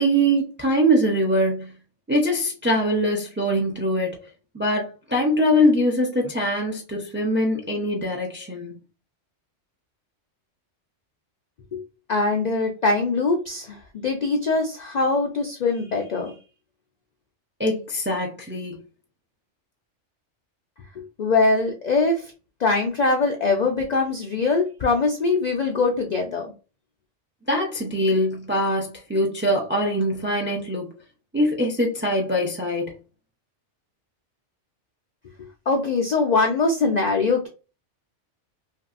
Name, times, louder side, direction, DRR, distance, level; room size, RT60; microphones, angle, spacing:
voice 1, 0.0-1.7 2.1-4.2 4.5-8.7 17.6-18.7 27.5-30.9 31.3-33.0, equal, 20° right, 0 dB, 0.3 m, -23 dB
voice 2, 12.1-16.3 21.0-22.3 22.6-26.5 35.7-37.5, left 3 dB, 65° left, 3 dB, 0.4 m, -22 dB
2.9 x 2.6 x 2.4 m, 0.33 s
omnidirectional pair, 1.2 m